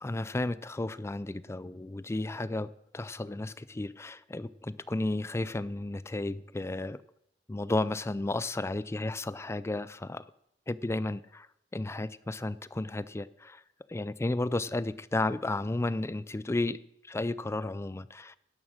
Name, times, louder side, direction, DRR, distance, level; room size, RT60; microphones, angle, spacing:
voice 1, 0.0-7.0 7.5-10.2 10.7-11.5 11.7-13.6 13.9-18.4, left 2 dB, 15° left, 0.4 m, -33 dB
11.0 x 11.0 x 6.4 m
head